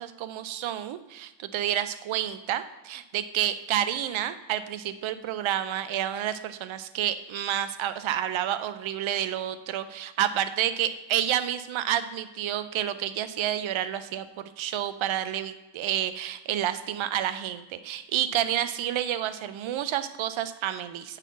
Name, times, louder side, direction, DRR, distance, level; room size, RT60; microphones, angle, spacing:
voice 1, 0.0-21.2, right 11 dB, 85° right, 12 dB, 0.7 m, -29 dB
8.4 x 4.1 x 5.4 m, 1.1 s
cardioid pair, 120°, 47 cm